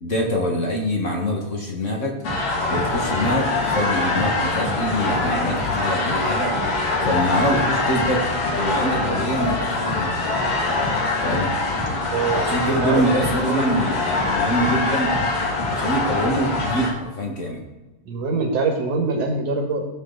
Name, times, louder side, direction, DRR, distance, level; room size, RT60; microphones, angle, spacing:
voice 1, 0.0-2.2 2.7-6.5 7.0-10.3 11.2-11.5 12.3-15.1 15.7-17.6, equal, 45° left, 1 dB, 1.0 m, -24 dB
sound 1, 2.2-16.9, left 2 dB, 85° left, 4.3 m, -23 dB
voice 2, 11.8-12.4 12.8-13.8 18.1-19.9, right 4 dB, 60° right, 2 dB, 2.4 m, -24 dB
16.5 x 6.6 x 4.0 m, 1.1 s
omnidirectional pair, 3.7 m